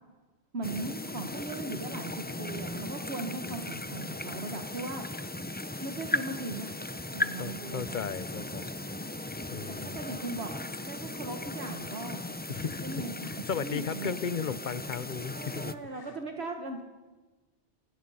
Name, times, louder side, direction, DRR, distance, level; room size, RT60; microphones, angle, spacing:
voice 1, 0.5-5.0 5.8-6.8 7.1-8.0 9.7-12.2 12.8-13.3 13.6-14.1 15.3-16.8, right 2 dB, 65° right, 4 dB, 1.7 m, -38 dB
sound 1, 0.6-15.8, left 1 dB, 15° left, 0.4 m, -37 dB
voice 2, 7.3-8.9 9.5-10.0 12.5-16.1, left 6 dB, 45° left, 15 dB, 0.9 m, -36 dB
28.0 x 17.5 x 5.6 m, 1.3 s
omnidirectional pair, 1.2 m